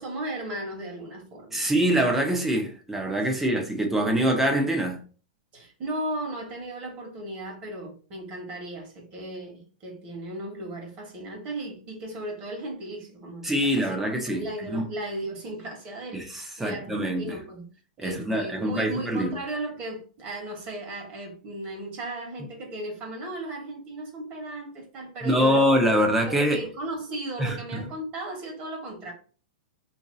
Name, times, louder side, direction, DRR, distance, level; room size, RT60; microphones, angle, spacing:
voice 1, 0.0-1.7 3.4-3.6 5.5-17.7 18.0-25.7 26.3-29.1, right 1 dB, 30° right, 1.3 m, -36 dB
voice 2, 1.5-5.0 13.4-14.8 16.1-17.4 18.0-19.4 25.2-26.6 27.4-27.8, equal, 5° right, 0.7 m, -24 dB
2.9 x 2.7 x 3.9 m
hypercardioid pair, 150°, 4 cm